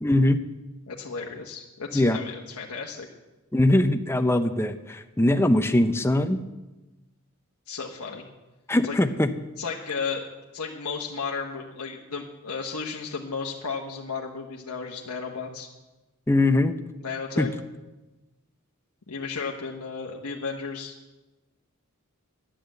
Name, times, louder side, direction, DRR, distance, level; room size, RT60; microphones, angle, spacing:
voice 1, 0.0-0.4 1.9-2.2 3.5-6.4 8.7-9.3 16.3-16.7 17.4-17.5, left 1 dB, 10° left, 8 dB, 0.6 m, -21 dB
voice 2, 0.9-3.1 7.7-8.2 8.8-9.0 9.6-10.3 10.5-15.7 17.0-17.5 19.1-20.9, left 5 dB, 90° left, -1 dB, 1.1 m, -34 dB
10.0 x 9.3 x 7.7 m, 1.1 s
head